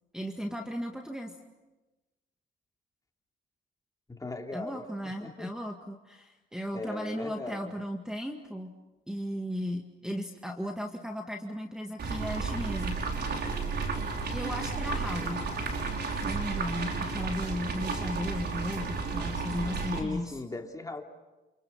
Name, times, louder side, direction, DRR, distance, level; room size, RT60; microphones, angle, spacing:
voice 1, 0.1-1.3 4.5-8.7 9.1-13.0 14.3-15.4 16.2-20.4, equal, 5° right, 3 dB, 1.9 m, -36 dB
voice 2, 4.1-4.9 5.2-5.5 6.7-7.7 19.9-21.0, left 2 dB, 15° left, 3 dB, 3.0 m, -38 dB
sound 1, 12.0-20.0, right 4 dB, 55° right, 5.0 m, -32 dB
28.5 x 28.0 x 5.8 m, 1.1 s
cardioid pair, 90°, 20 cm